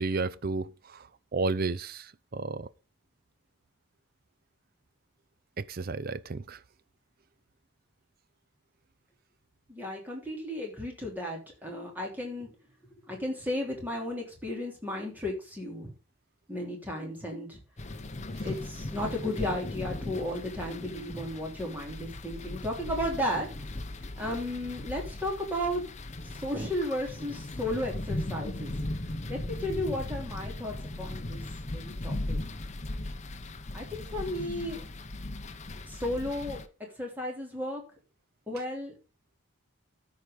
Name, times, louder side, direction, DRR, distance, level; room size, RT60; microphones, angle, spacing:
voice 1, 0.0-2.7 5.6-6.6, right 3 dB, 45° right, 0.5 m, -32 dB
voice 2, 9.7-12.5 13.1-15.9 16.5-17.6 18.4-23.5 24.0-25.8 26.2-28.7 29.3-31.4 31.7-32.4 33.7-34.8 35.9-36.6 37.0-37.8 38.5-38.9, left 1 dB, 10° right, 3.3 m, -34 dB
sound 1, 17.8-36.7, left 1 dB, 35° left, 0.8 m, -38 dB
13.5 x 4.9 x 5.2 m
head